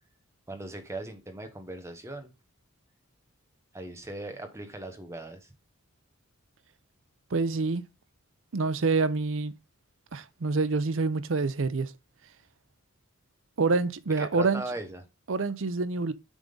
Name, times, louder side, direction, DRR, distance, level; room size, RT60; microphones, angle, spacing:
voice 1, 0.5-2.3 3.7-5.5 14.2-15.0, right 2 dB, 15° right, 1.0 m, -39 dB
voice 2, 7.3-7.8 8.5-9.5 10.1-11.9 13.6-14.6 15.3-16.1, right 3 dB, 60° right, 0.6 m, -27 dB
7.3 x 3.7 x 5.2 m
head